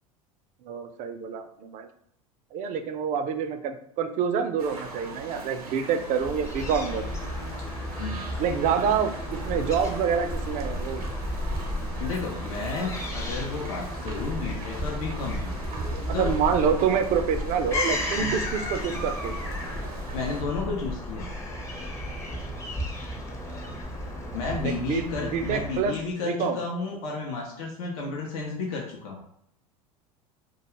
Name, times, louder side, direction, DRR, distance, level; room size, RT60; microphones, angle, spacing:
voice 1, 0.6-1.9 2.5-7.1 8.4-11.0 16.0-19.4 24.6-26.0 26.2-26.6, right 7 dB, 40° right, 8 dB, 0.4 m, -27 dB
sound 1, 4.6-20.4, right 3 dB, 85° right, 0.6 m, -41 dB
Fowl / Gull seagull, 6.2-26.1, left 1 dB, 15° left, 0.6 m, -33 dB
voice 2, 7.6-8.4 12.0-15.5 16.1-16.3 18.2-18.4 20.1-21.3 24.3-29.2, left 4 dB, 70° left, -1 dB, 0.6 m, -32 dB
2.4 x 2.2 x 3.0 m, 0.72 s
hypercardioid pair, 85°, 19 cm